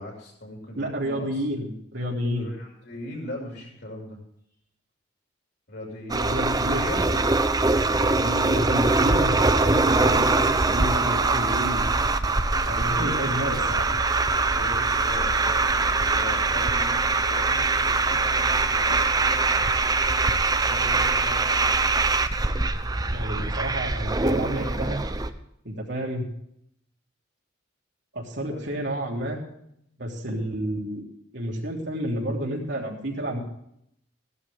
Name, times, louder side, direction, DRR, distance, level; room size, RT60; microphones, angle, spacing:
voice 1, 0.0-1.4 2.3-4.2 5.7-7.2 12.6-13.7 14.4-19.9 20.5-21.7 28.5-28.7, left 1 dB, 55° left, -1 dB, 5.9 m, -39 dB
voice 2, 0.8-2.5 6.1-7.2 8.1-11.9 12.7-13.8 23.1-25.0 25.6-26.2 28.1-29.4 30.0-31.0 31.3-33.4, equal, 55° right, -1 dB, 3.2 m, -30 dB
sound 1, 6.1-25.3, right 3 dB, 20° right, 0.7 m, -23 dB
15.5 x 12.5 x 3.6 m, 0.74 s
head